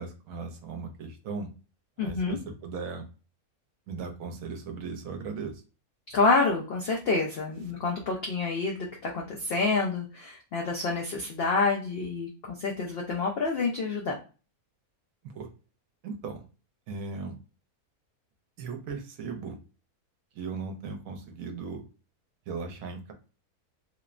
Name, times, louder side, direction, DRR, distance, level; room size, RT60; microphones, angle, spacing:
voice 1, 0.0-1.5 2.0-3.0 3.9-5.6 15.2-15.5 16.0-16.4 16.9-17.3 18.6-19.6 20.3-21.8 22.5-23.1, right 4 dB, 75° right, 5 dB, 1.0 m, -37 dB
voice 2, 2.0-2.4 6.1-14.2, left 3 dB, 75° left, 0 dB, 0.5 m, -28 dB
2.9 x 2.1 x 2.4 m, 0.34 s
omnidirectional pair, 1.6 m